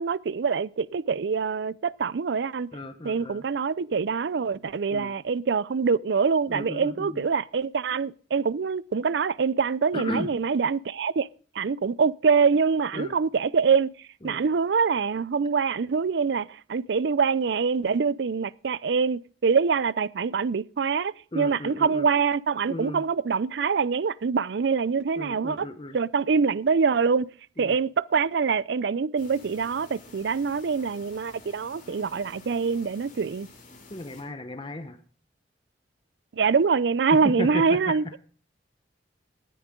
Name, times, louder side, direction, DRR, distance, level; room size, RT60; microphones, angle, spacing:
voice 1, 0.0-2.7 3.0-11.3 11.6-13.9 14.2-25.7 25.9-27.3 27.6-33.5 36.3-38.2, right 5 dB, 65° right, 0.5 m, -25 dB
voice 2, 2.7-3.4 4.9-5.1 6.5-7.3 9.9-10.3 12.9-13.1 14.2-14.4 21.3-22.1 22.7-23.0 25.2-26.0 27.6-27.8 33.9-35.0 37.1-38.0, left 1 dB, 30° left, 1.0 m, -34 dB
sound 1, 29.2-34.2, left 3 dB, 45° left, 5.3 m, -50 dB
18.5 x 9.9 x 3.7 m
head